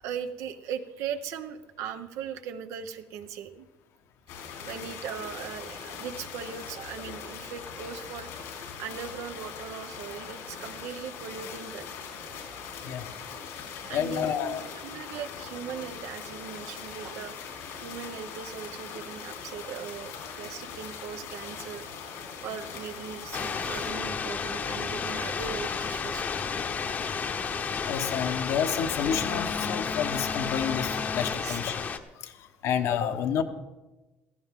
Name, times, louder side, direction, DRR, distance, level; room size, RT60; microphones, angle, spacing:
voice 1, 0.0-3.7 4.6-11.8 13.9-26.2 31.3-31.6, right 8 dB, 75° right, 9 dB, 1.0 m, -39 dB
sound 1, 4.3-23.9, left 6 dB, 90° left, 3.8 m, -41 dB
voice 2, 13.9-14.6 27.8-31.8 32.2-33.4, left 8 dB, 70° left, 6 dB, 1.2 m, -29 dB
sound 2, 23.3-32.0, left 5 dB, 35° left, 1.0 m, -31 dB
16.0 x 14.5 x 3.8 m, 1.1 s
cardioid pair, 130°, 5 cm